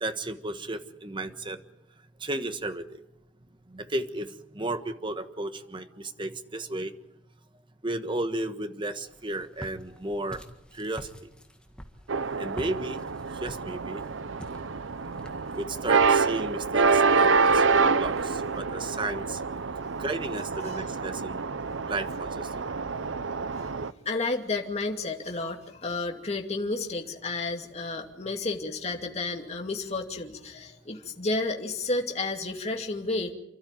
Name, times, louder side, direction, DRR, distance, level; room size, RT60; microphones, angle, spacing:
voice 1, 0.0-1.6 2.2-2.9 3.7-4.3 4.5-6.9 7.8-10.4 10.7-11.1 12.4-13.0 13.4-14.0 15.5-19.4 20.0-21.4 21.9-22.8, right 2 dB, 25° right, 9 dB, 1.4 m, -33 dB
Walk footsteps, 9.1-18.3, equal, 5° left, 1.8 m, -47 dB
sound 1, 12.1-23.9, right 4 dB, 75° right, 0.8 m, -26 dB
voice 2, 23.4-33.3, left 3 dB, 35° left, 2 dB, 2.5 m, -32 dB
29.0 x 13.0 x 9.2 m, 0.83 s
head